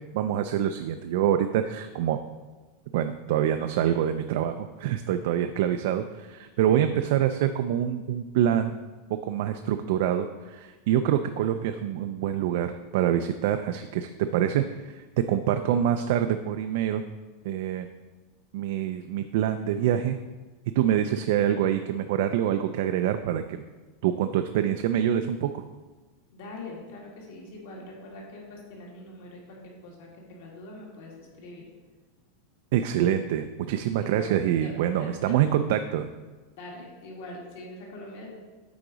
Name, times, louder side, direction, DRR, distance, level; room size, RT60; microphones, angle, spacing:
voice 1, 0.1-2.2 2.9-8.7 9.2-17.0 17.4-17.9 18.5-20.2 20.8-23.6 24.0-25.6 32.7-36.1, right 10 dB, 55° right, 8 dB, 0.3 m, -26 dB
voice 2, 26.3-31.7 34.0-34.4 34.6-35.4 36.6-38.4, left 2 dB, 60° left, -2 dB, 2.0 m, -43 dB
8.3 x 3.9 x 5.0 m, 1.3 s
supercardioid pair, 180°, 0 cm